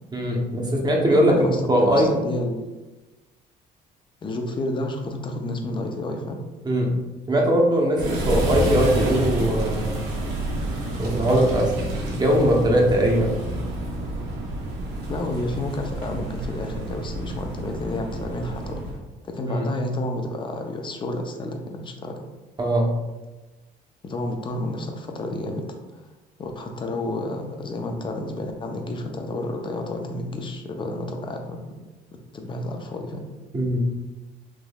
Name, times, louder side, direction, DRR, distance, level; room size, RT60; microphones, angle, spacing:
voice 1, 0.1-2.1 6.6-7.0 7.3-9.9 11.0-13.4 19.5-19.7 22.6-22.9 33.5-33.8, equal, 25° right, -1 dB, 0.7 m, -20 dB
voice 2, 1.3-2.7 4.2-6.4 15.1-19.0 19.2-22.2 24.0-25.8 26.4-31.6 32.3-33.3, left 1 dB, 30° left, 4 dB, 0.5 m, -30 dB
sound 1, 8.0-19.0, right 1 dB, 90° right, 0.8 m, -29 dB
3.5 x 3.0 x 2.2 m, 1.1 s
cardioid pair, 110°, 17 cm